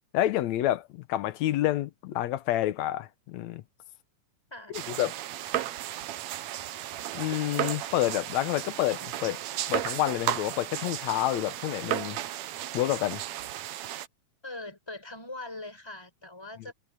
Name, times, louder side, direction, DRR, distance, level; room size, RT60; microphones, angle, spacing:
voice 1, 0.1-3.6 4.7-5.1 7.1-9.4 9.7-12.2 12.7-13.2, left 14 dB, 70° left, 2.0 m, -28 dB
sound 1, 4.7-14.1, right 13 dB, 70° right, 1.9 m, -34 dB
voice 2, 14.4-16.7, left 2 dB, 5° left, 4.5 m, -41 dB
omnidirectional pair, 3.7 m